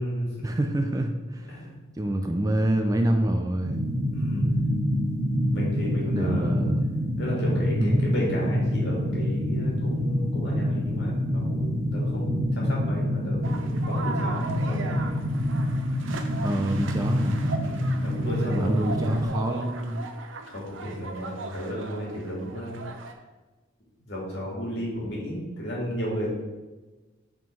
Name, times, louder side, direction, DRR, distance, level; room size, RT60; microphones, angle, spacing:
voice 1, 0.4-1.7 2.0-3.9 6.0-6.9 7.8-8.0 16.4-17.4 18.5-20.1, right 1 dB, 15° right, 5 dB, 0.3 m, -26 dB
sound 1, 3.7-19.3, equal, 45° right, 1.2 m, -26 dB
voice 2, 4.1-4.6 5.5-6.6 7.2-15.0 17.6-18.8 20.4-22.8 24.1-26.3, equal, 55° left, -4 dB, 2.0 m, -33 dB
sound 2, 13.4-23.1, right 3 dB, 70° right, 0.6 m, -38 dB
5.1 x 3.8 x 5.3 m, 1.2 s
head